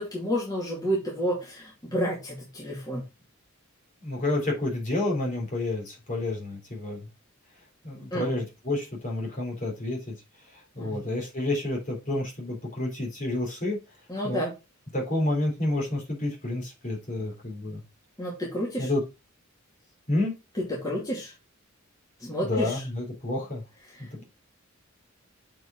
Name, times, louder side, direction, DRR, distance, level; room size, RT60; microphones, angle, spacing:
voice 1, 0.0-3.0 8.1-8.3 10.8-11.0 14.1-14.5 18.2-18.9 20.6-21.3 22.2-22.8, equal, 20° left, -5 dB, 2.6 m, -30 dB
voice 2, 4.0-7.1 7.8-10.2 10.8-13.8 14.2-14.4 14.9-17.8 18.8-19.0 20.1-20.4 22.4-23.6 24.0-24.2, left 2 dB, 40° left, -1 dB, 3.4 m, -29 dB
7.6 x 4.9 x 3.9 m, 0.27 s
head